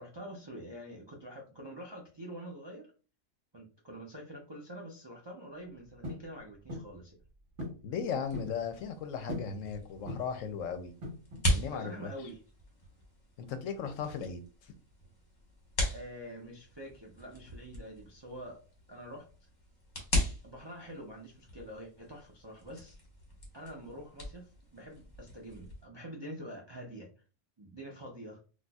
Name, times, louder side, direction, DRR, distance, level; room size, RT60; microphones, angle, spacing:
voice 1, 0.0-2.9 3.5-7.1 11.7-12.4 15.9-18.6 18.9-19.3 20.4-23.0 23.5-27.1 27.6-28.4, equal, 40° right, -2 dB, 0.3 m, -46 dB
sound 1, 6.0-6.3 6.7-7.0 7.6-7.8 8.1-8.6 9.3-9.6 10.1-10.4 11.0-11.5, left 1 dB, 60° right, 1.3 m, -40 dB
voice 2, 7.8-10.9 11.4-12.1 13.4-14.7, left 6 dB, 70° left, 8 dB, 0.9 m, -37 dB
sound 2, 8.2-25.8, left 1 dB, 35° left, 1.0 m, -39 dB
4.0 x 2.5 x 2.3 m, 0.35 s
omnidirectional pair, 1.4 m